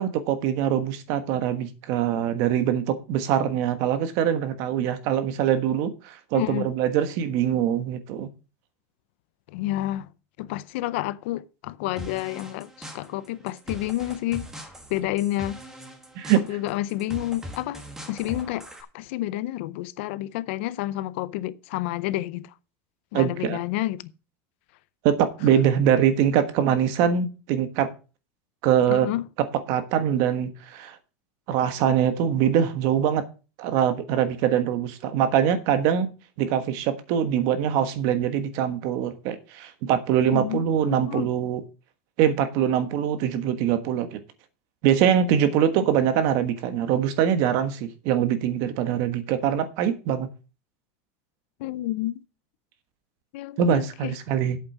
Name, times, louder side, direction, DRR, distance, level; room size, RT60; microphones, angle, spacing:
voice 1, 0.0-8.3 16.1-16.6 23.1-23.6 25.0-27.9 28.6-29.1 29.4-31.0 31.5-33.2 33.6-36.1 36.4-41.6 42.2-44.2 44.8-50.3 53.6-54.6, right 9 dB, 45° right, 1.4 m, -23 dB
voice 2, 6.3-6.7 9.5-10.1 10.4-12.7 12.9-14.5 14.9-15.6 16.5-18.6 18.9-22.5 23.1-24.0 28.9-29.3 40.3-41.3 51.6-52.1 53.3-54.1, left 15 dB, 60° left, 0.6 m, -29 dB
sound 1, 12.0-18.8, equal, 5° right, 1.5 m, -41 dB
8.4 x 7.2 x 6.1 m
supercardioid pair, 170°, 7 cm